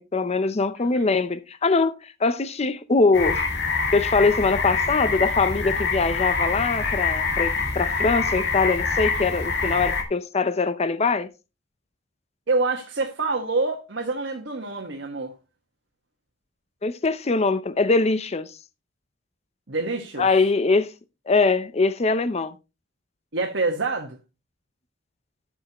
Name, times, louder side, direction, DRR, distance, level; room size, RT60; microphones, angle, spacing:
voice 1, 0.0-3.4 3.9-11.3 16.8-18.5 20.2-20.9 21.3-22.6, left 3 dB, 35° left, 0.6 m, -22 dB
voice 2, 0.8-1.1 12.5-15.3 19.7-20.3 23.3-24.2, right 3 dB, 70° right, 1.5 m, -26 dB
sound 1, 3.1-10.0, left 4 dB, 65° left, 2.0 m, -25 dB
12.5 x 6.3 x 3.0 m
head